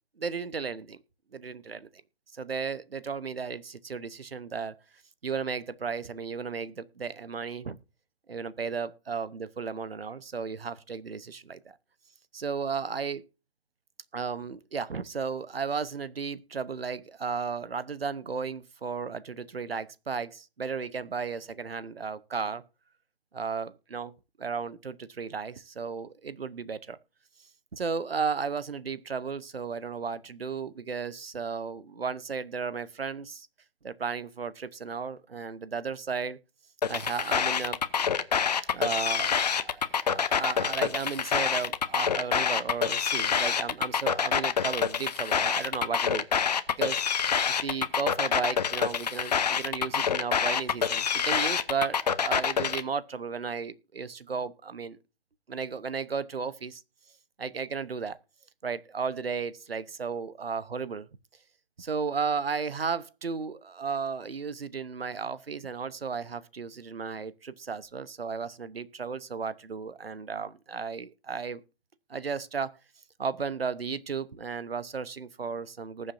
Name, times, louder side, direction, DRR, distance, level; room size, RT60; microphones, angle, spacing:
voice 1, 0.2-1.0 1.3-1.9 2.3-4.8 5.2-7.8 8.3-11.8 12.3-13.2 14.1-22.6 23.3-24.1 24.4-27.0 27.7-33.5 33.8-36.4 36.9-37.8 38.7-46.3 46.8-47.0 47.5-55.0 55.5-56.8 57.4-58.2 58.6-61.1 61.8-71.6 72.1-72.8 73.2-76.1, right 5 dB, 70° right, 1.0 m, -34 dB
sound 1, 36.8-52.8, left 7 dB, 40° left, 0.8 m, -26 dB
19.5 x 7.5 x 2.6 m
figure-of-eight pair, 145°, 31 cm